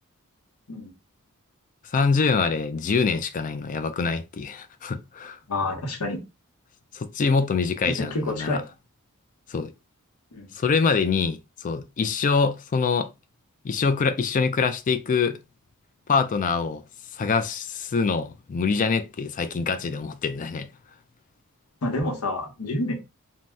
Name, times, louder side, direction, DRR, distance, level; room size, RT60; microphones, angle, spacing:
voice 1, 1.9-5.4 6.9-8.6 9.5-9.7 10.5-13.1 13.6-15.4 16.1-16.8 17.1-20.7, left 5 dB, 35° left, 0.3 m, -24 dB
voice 2, 5.5-6.2 7.9-8.6 10.3-10.5 21.8-22.9, left 2 dB, 85° left, 0.9 m, -28 dB
2.6 x 2.0 x 3.3 m
head